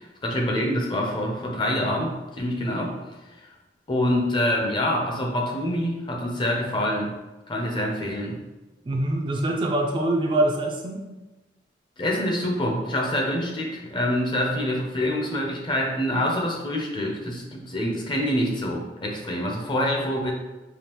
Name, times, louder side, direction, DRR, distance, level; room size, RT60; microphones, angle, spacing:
voice 1, 0.0-3.0 3.9-7.1 7.5-8.4 12.0-20.3, left 1 dB, 25° left, -1 dB, 0.6 m, -26 dB
voice 2, 8.9-11.0, right 1 dB, 30° right, 1 dB, 0.4 m, -24 dB
5.0 x 2.3 x 3.0 m, 1.1 s
head